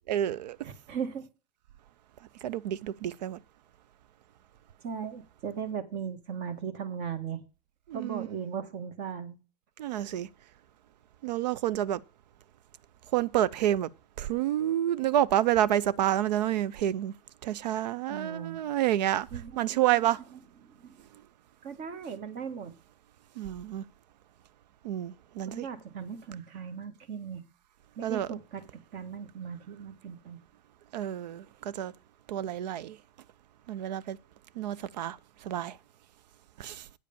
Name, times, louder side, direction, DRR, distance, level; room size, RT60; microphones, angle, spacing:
voice 1, 0.1-0.6 2.4-3.4 7.9-8.3 9.8-10.3 11.2-12.0 13.1-13.9 14.2-17.1 17.4-19.3 19.6-20.2 23.4-23.8 24.8-25.7 28.0-28.3 30.9-31.9 32.3-33.0 33.7-34.2 34.6-35.2 35.4-35.8 36.6-36.8, right 12 dB, 90° right, 0.5 m, -29 dB
voice 2, 0.6-1.3 4.8-7.4 7.9-9.4 18.1-18.7 19.3-21.0 21.6-22.7 25.4-27.4 28.0-30.4, right 7 dB, 50° right, 1.6 m, -38 dB
9.1 x 5.0 x 7.0 m
hypercardioid pair, 105°, 21 cm